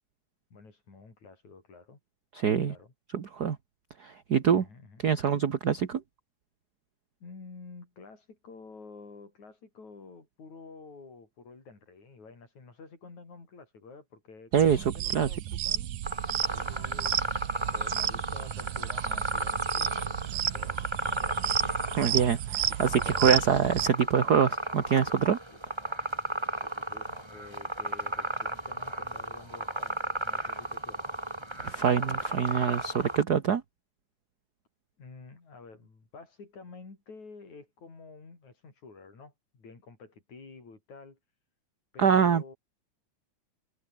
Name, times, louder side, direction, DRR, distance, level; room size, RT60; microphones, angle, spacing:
voice 1, 0.5-2.0 2.7-2.9 4.5-5.0 7.2-16.0 16.5-17.2 17.7-22.0 22.7-22.9 25.5-25.6 26.6-31.1 35.0-41.2 41.9-42.6, left 4 dB, 65° left, 7.3 m, -50 dB
voice 2, 2.3-2.7 3.1-3.6 4.0-4.6 5.0-6.0 14.5-15.3 22.0-25.4 31.6-33.6 42.0-42.5, right 7 dB, 45° right, 1.4 m, -25 dB
sound 1, 14.5-23.9, right 13 dB, 85° right, 2.7 m, -32 dB
sound 2, 16.1-33.2, right 1 dB, 10° right, 3.6 m, -34 dB
omnidirectional pair, 3.6 m